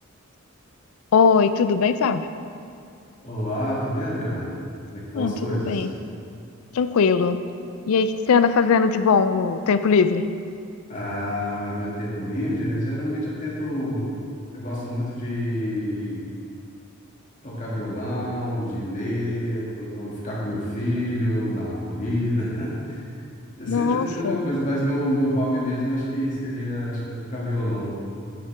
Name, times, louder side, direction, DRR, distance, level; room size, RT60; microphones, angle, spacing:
voice 1, 1.1-2.3 5.1-5.3 5.7-5.9 6.7-7.4 7.9-10.2 23.7-24.4, left 5 dB, 80° left, 11 dB, 0.4 m, -20 dB
voice 2, 3.2-4.5 4.9-5.8 10.9-14.1 14.5-16.2 17.4-23.0 23.6-28.0, equal, 35° left, -7 dB, 2.0 m, -27 dB
8.8 x 7.8 x 3.4 m, 2.4 s
head